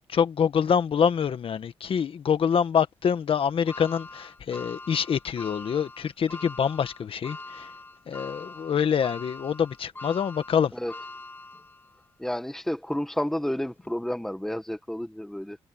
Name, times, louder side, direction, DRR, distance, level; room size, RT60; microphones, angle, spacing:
voice 1, 0.0-7.7 8.1-10.7, left 7 dB, 60° left, 1.5 m, -26 dB
sound 1, 3.7-12.0 12.5-12.6 13.8-13.9, left 2 dB, 20° left, 2.1 m, -43 dB
voice 2, 12.2-15.6, left 1 dB, 5° left, 1.2 m, -30 dB
cardioid pair, 110°, 11 cm